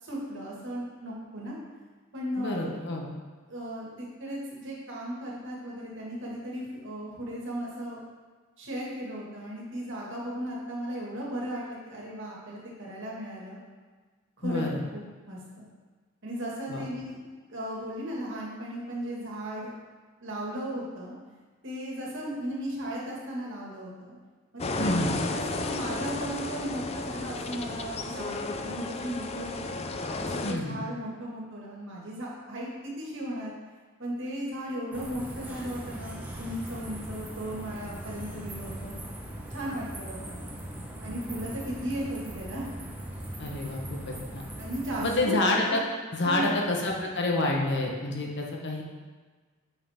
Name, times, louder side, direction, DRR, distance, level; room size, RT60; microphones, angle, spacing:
voice 1, 0.0-1.6 2.1-2.7 3.5-8.0 8.6-13.6 14.4-14.7 14.9-15.7 16.2-19.7 20.2-21.1 21.6-24.2 24.5-29.8 30.3-33.5 34.0-39.0 39.5-40.5 41.0-42.7 44.6-45.8 46.2-46.6, right 1 dB, 60° right, -4 dB, 2.0 m, -36 dB
voice 2, 2.4-3.1 14.4-14.8 16.7-16.9 24.8-25.1 30.4-30.8 43.4-44.5 45.0-45.8 46.1-48.8, left 2 dB, 55° left, 0 dB, 1.2 m, -28 dB
sound 1, 24.6-30.5, left 3 dB, 30° left, 0.4 m, -33 dB
sound 2, 34.9-45.1, right 1 dB, 10° right, 1.1 m, -40 dB
9.5 x 5.7 x 3.6 m, 1.4 s
head